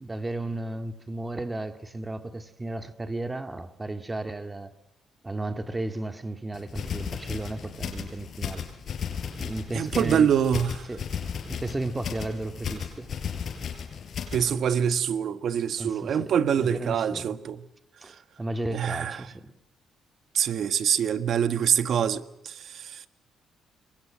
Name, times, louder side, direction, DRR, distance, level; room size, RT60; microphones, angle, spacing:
voice 1, 0.0-4.7 5.2-8.7 9.3-10.3 10.9-11.1 11.5-13.2 15.8-17.4 18.0-19.5, right 2 dB, 15° right, 2.2 m, -34 dB
sound 1, 6.5-14.5, left 7 dB, 55° left, 5.7 m, -35 dB
voice 2, 9.7-10.9 14.3-17.6 18.7-19.2 20.3-23.1, right 8 dB, 65° right, 1.5 m, -25 dB
27.5 x 23.0 x 6.3 m
cardioid pair, 90°, 0 cm